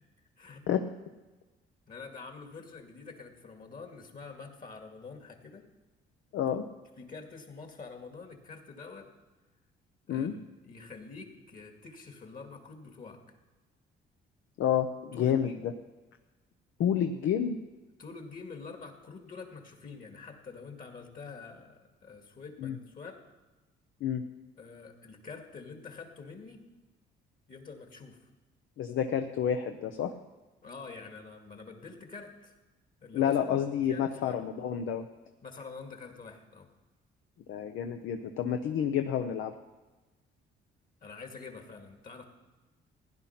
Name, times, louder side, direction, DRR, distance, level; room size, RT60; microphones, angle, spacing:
voice 1, 0.4-0.7 1.9-5.7 7.0-9.1 10.1-10.4 10.6-13.2 15.1-15.7 18.0-23.3 24.6-26.7 27.5-28.3 30.6-32.6 33.0-34.4 35.4-36.7 41.0-42.2, left 4 dB, 45° left, 4 dB, 2.3 m, -46 dB
voice 2, 6.3-6.7 10.1-10.3 14.6-15.5 16.8-17.6 22.6-22.8 24.0-24.2 28.8-30.1 33.1-35.1 37.5-39.5, left 9 dB, 80° left, 7 dB, 0.8 m, -29 dB
16.0 x 10.5 x 5.9 m, 1.2 s
cardioid pair, 90°, 20 cm